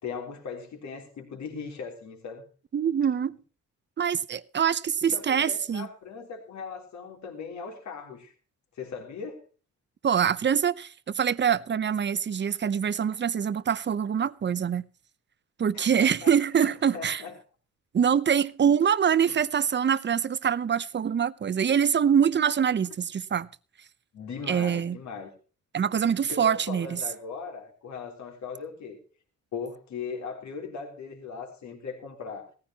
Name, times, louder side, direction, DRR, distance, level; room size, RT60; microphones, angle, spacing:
voice 1, 0.0-2.4 5.0-8.3 8.8-9.4 15.7-17.4 19.3-19.4 24.1-25.3 26.3-29.0 29.5-32.5, left 5 dB, 65° left, 3.6 m, -39 dB
voice 2, 2.7-3.4 4.0-5.9 10.0-14.8 15.6-17.2 17.9-23.5 24.5-25.0 25.7-27.0, right 8 dB, 35° right, 0.8 m, -24 dB
17.5 x 14.5 x 2.9 m
cardioid pair, 100°, 31 cm